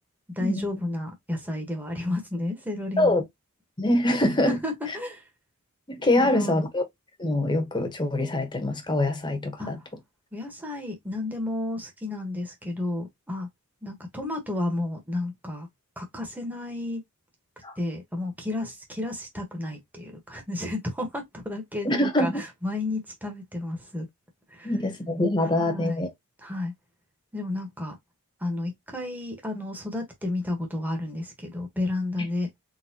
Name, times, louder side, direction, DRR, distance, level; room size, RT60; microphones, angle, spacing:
voice 1, 0.4-3.2 4.5-5.2 6.2-6.6 9.6-9.7 10.3-13.5 13.8-15.7 16.0-17.0 17.8-24.1 24.5-24.7 25.6-26.0 26.4-26.7 27.3-27.9 28.4-32.5, left 2 dB, 10° right, 1.3 m, -32 dB
voice 2, 3.8-4.6 4.9-5.0 5.9-6.8 7.2-9.8 17.6-17.7 21.8-22.4 24.6-26.1, left 1 dB, 20° left, 1.1 m, -24 dB
4.0 x 3.6 x 2.9 m
head